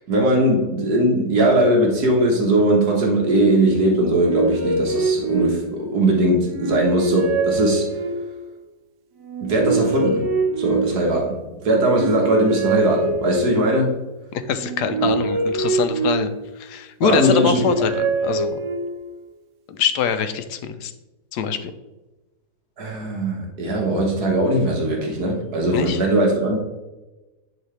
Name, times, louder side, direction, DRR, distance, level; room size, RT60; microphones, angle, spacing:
voice 1, 0.1-8.0 9.4-10.2 10.6-13.9 17.0-17.6 22.8-26.6, right 1 dB, 70° right, -1 dB, 1.8 m, -19 dB
sound 1, 3.9-6.0 6.5-8.5 9.2-11.3 11.8-13.8 14.5-16.7 17.2-19.2, right 3 dB, 90° right, 1.5 m, -24 dB
voice 2, 14.3-18.6 19.7-20.9 21.3-21.7 25.7-26.0, left 7 dB, 90° left, 10 dB, 1.2 m, -24 dB
11.0 x 3.8 x 3.3 m, 1.1 s
omnidirectional pair, 1.7 m